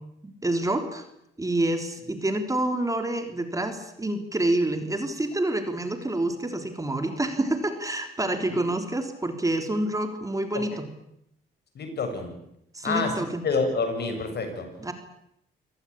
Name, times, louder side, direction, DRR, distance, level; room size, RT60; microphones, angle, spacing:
voice 1, 0.2-1.0 1.4-10.9 12.7-13.5 14.8-14.9, right 1 dB, 15° right, 6 dB, 3.5 m, -27 dB
voice 2, 11.7-12.3 12.8-13.1 13.4-14.7, left 4 dB, 55° left, 6 dB, 7.4 m, -27 dB
26.5 x 18.5 x 8.8 m, 0.78 s
cardioid pair, 90°, 20 cm